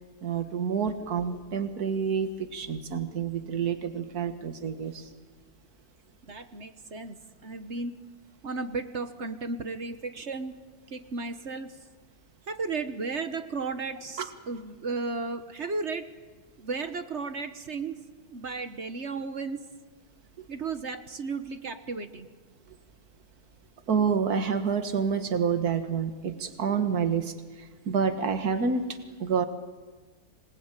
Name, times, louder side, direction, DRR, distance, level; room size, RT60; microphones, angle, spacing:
voice 1, 0.2-5.1 14.2-14.3 20.4-20.5 23.9-27.3 27.9-28.8 29.2-29.4, right 6 dB, 80° right, 9 dB, 2.0 m, -28 dB
voice 2, 6.2-7.2 7.4-7.9 8.4-10.5 10.9-11.7 12.5-16.1 16.6-18.0 18.3-19.6 20.5-22.3, right 4 dB, 50° right, 10 dB, 1.4 m, -34 dB
26.5 x 20.5 x 9.0 m, 1.3 s
omnidirectional pair, 1.6 m